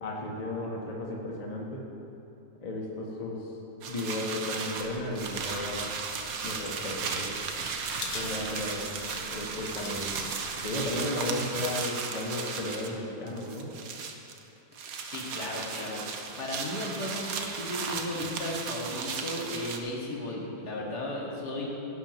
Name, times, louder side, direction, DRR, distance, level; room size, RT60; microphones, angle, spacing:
voice 1, 0.0-1.8 2.6-3.5 3.9-5.8 6.4-7.3 8.1-8.9 9.2-10.1 10.6-13.7, left 1 dB, 25° left, -2 dB, 1.2 m, -34 dB
sound 1, 3.8-12.9 13.3-14.4 14.7-19.8, right 5 dB, 60° right, 1.2 m, -35 dB
sound 2, 4.9-10.9, left 4 dB, 80° left, 1.8 m, -46 dB
voice 2, 15.1-16.0 16.4-21.7, left 1 dB, 65° left, -3 dB, 2.4 m, -35 dB
16.5 x 11.0 x 3.1 m, 2.9 s
omnidirectional pair, 1.8 m